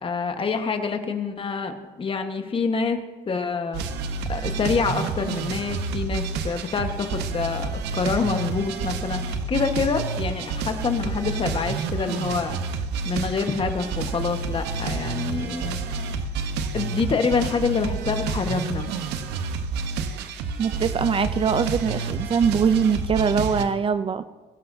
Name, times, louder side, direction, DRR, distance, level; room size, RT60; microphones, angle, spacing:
voice 1, 0.0-3.0 3.3-3.8 4.3-12.7 13.0-16.2 16.7-18.9, left 5 dB, 30° left, 6 dB, 1.3 m, -26 dB
sound 1, 3.7-23.6, right 4 dB, 85° right, 1.0 m, -29 dB
voice 2, 20.6-24.3, right 6 dB, 30° right, 13 dB, 0.4 m, -22 dB
21.5 x 11.5 x 2.7 m, 1.3 s
cardioid pair, 110°, 17 cm